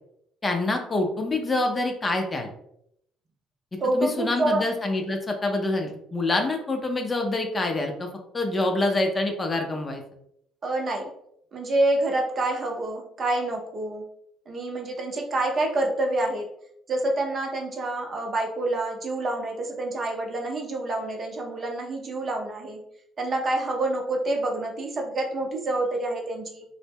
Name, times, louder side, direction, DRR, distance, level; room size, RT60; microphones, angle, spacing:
voice 1, 0.4-2.5 3.9-8.1 8.3-10.0, left 2 dB, 30° left, 3 dB, 0.5 m, -26 dB
voice 2, 3.8-4.6 10.6-11.1 11.5-14.0 14.5-16.4 16.9-22.8 23.2-26.6, right 2 dB, 45° right, 1 dB, 0.6 m, -27 dB
2.1 x 2.0 x 3.3 m, 0.74 s
hypercardioid pair, 60°, 0 cm